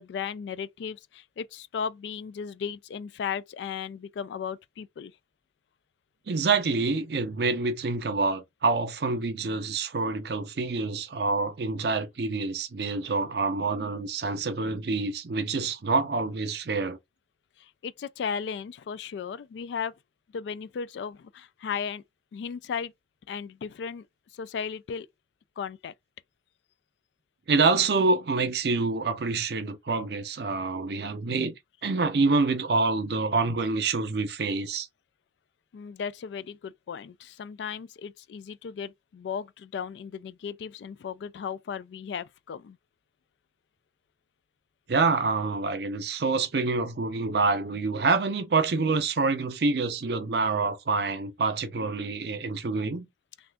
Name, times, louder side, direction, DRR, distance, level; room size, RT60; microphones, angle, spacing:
voice 1, 0.0-5.1 17.6-19.9 20.3-22.0 22.3-22.9 23.3-24.1 24.3-25.1 25.6-25.9 35.7-42.8, left 6 dB, 80° left, 0.3 m, -35 dB
voice 2, 6.3-17.0 27.5-31.6 31.8-34.9 44.9-53.1, right 4 dB, 65° right, 0.6 m, -26 dB
2.6 x 2.4 x 3.4 m
head